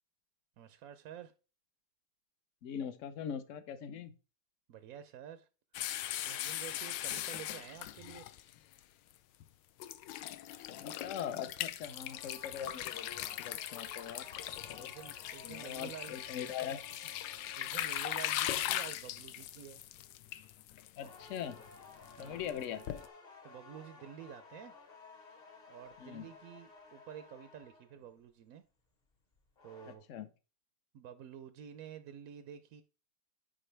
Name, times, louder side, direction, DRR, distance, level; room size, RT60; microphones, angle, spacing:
voice 1, 0.6-1.3 4.7-5.5 6.3-8.3 14.8-16.8 17.6-19.8 22.2-22.5 23.4-24.7 25.7-28.6 29.6-30.0 30.9-32.8, right 9 dB, 70° right, 0.8 m, -50 dB
voice 2, 2.6-4.1 10.7-14.3 14.7-14.9 15.4-16.8 21.0-21.6 22.2-22.8 26.0-26.3 30.1-30.3, left 8 dB, 60° left, 0.9 m, -41 dB
sound 1, 5.7-8.8 9.4-9.5 9.8-23.1, left 12 dB, 80° left, 1.3 m, -40 dB
sound 2, 11.9-19.0 21.0-28.1 29.3-29.9, left 4 dB, 30° left, 1.0 m, -56 dB
10.0 x 5.0 x 3.3 m
omnidirectional pair, 2.0 m